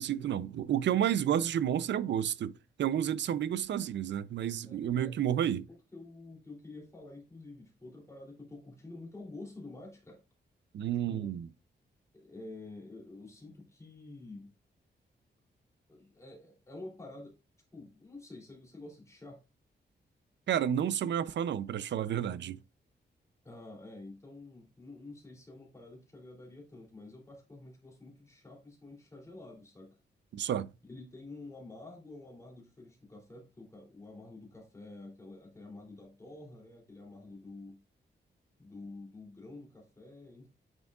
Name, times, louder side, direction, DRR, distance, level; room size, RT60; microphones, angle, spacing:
voice 1, 0.0-2.5 2.8-5.6 10.7-11.5 20.5-22.6 30.3-30.7, right 10 dB, 75° right, 0.5 m, -30 dB
voice 2, 4.6-5.5 5.9-10.2 11.1-11.3 12.1-14.5 15.9-17.3 17.7-19.4 23.4-30.0 30.9-37.8 38.6-40.5, left 2 dB, 15° left, 3.0 m, -49 dB
9.0 x 6.2 x 2.4 m
wide cardioid pair, 165°, 19 cm